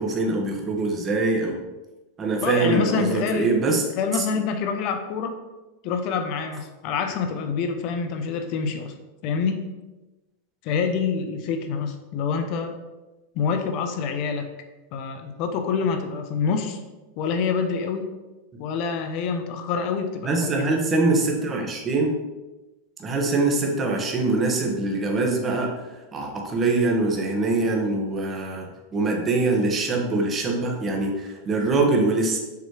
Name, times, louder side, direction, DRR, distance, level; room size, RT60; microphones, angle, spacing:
voice 1, 0.0-1.6 2.2-3.8 20.2-22.2 23.0-25.7 26.1-32.4, right 3 dB, 20° right, 1 dB, 1.2 m, -23 dB
voice 2, 2.4-3.6 4.0-5.3 5.8-8.9 9.2-9.6 10.6-12.7 13.3-14.5 14.9-16.8 17.2-18.1 18.6-20.7, left 5 dB, 45° left, 6 dB, 0.8 m, -26 dB
6.9 x 3.2 x 4.8 m, 1.1 s
supercardioid pair, 145°, 0 cm